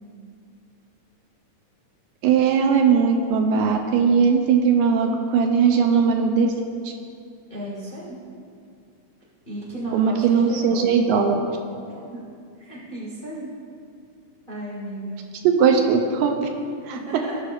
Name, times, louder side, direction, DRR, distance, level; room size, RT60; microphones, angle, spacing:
voice 1, 2.2-6.5 6.9-7.0 9.9-11.4 15.4-16.5 16.9-17.0, right 6 dB, 80° right, 4 dB, 1.8 m, -19 dB
voice 2, 7.5-8.2 9.5-10.8 11.9-12.0 12.6-13.5 14.5-15.2 16.9-17.3, right 1 dB, 55° left, -6 dB, 0.5 m, -34 dB
17.0 x 6.5 x 2.5 m, 2.4 s
omnidirectional pair, 3.8 m